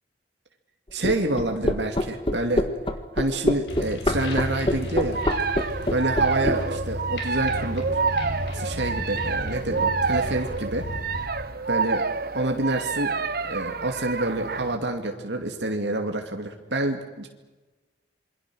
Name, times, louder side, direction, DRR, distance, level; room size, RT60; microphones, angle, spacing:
voice 1, 0.9-2.6 3.1-5.2 5.9-8.0 8.5-10.8 11.7-12.0 12.3-13.1 13.4-17.3, right 2 dB, 75° right, 3 dB, 2.4 m, -27 dB
sound 1, 1.0-6.6, left 1 dB, 30° left, 1.8 m, -24 dB
sound 2, 3.7-11.3, equal, 85° left, 5.8 m, -34 dB
sound 3, 5.1-14.8, right 4 dB, 55° right, 1.1 m, -28 dB
27.5 x 23.5 x 6.3 m, 1.2 s
head